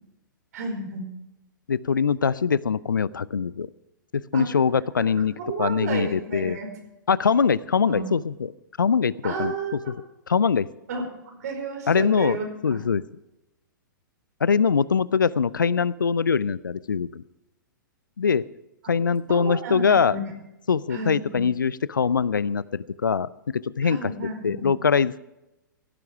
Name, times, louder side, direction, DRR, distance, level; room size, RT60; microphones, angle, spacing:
voice 1, 0.5-1.1 4.3-4.5 5.4-6.7 7.9-8.1 9.2-9.9 10.9-12.5 19.3-20.2 20.9-21.4 23.8-24.7, right 4 dB, 55° right, 4 dB, 4.9 m, -32 dB
voice 2, 1.7-3.7 4.1-5.3 5.6-6.6 7.1-8.5 8.8-9.9 10.3-10.7 11.9-13.0 14.4-17.2 18.2-18.4 18.9-20.2 20.7-24.1 24.4-25.2, left 6 dB, 75° left, 20 dB, 0.5 m, -23 dB
17.0 x 15.0 x 3.5 m, 0.95 s
figure-of-eight pair, 110°, 11 cm